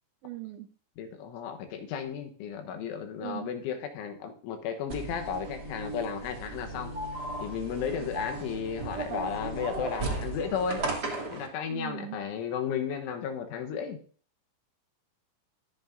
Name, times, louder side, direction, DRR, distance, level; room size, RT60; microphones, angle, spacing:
voice 1, 0.2-0.7 3.2-3.5 11.7-12.2, right 16 dB, 85° right, 9 dB, 2.5 m, -39 dB
voice 2, 1.0-6.9 7.4-10.8 11.3-14.0, left 7 dB, 75° left, 6 dB, 3.4 m, -34 dB
sound 1, 4.9-11.5, right 2 dB, 30° right, 2.1 m, -36 dB
24.0 x 9.3 x 2.7 m, 0.42 s
omnidirectional pair, 5.9 m